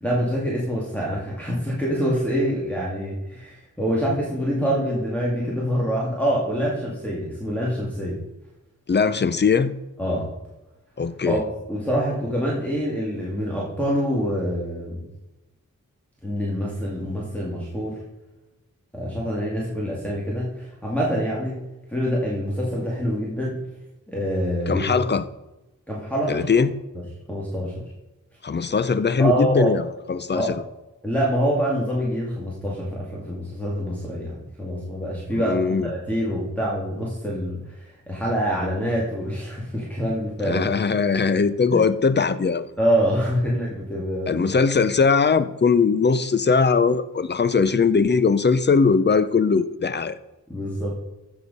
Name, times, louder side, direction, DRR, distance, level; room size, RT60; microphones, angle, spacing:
voice 1, 0.0-8.2 10.0-10.3 11.2-15.0 16.2-18.0 18.9-21.6 21.9-23.6 24.1-24.8 25.9-26.5 27.3-27.8 29.2-29.7 30.3-30.5 31.0-40.6 41.7-41.8 42.8-44.4 50.5-50.9, equal, 5° left, -6 dB, 2.2 m, -25 dB
voice 2, 8.9-9.7 11.0-11.4 24.7-25.2 26.3-26.7 28.4-30.6 35.3-35.9 40.4-42.7 44.3-50.1, left 5 dB, 35° left, 13 dB, 0.6 m, -20 dB
14.5 x 4.9 x 5.4 m, 1.0 s
wide cardioid pair, 110°, 31 cm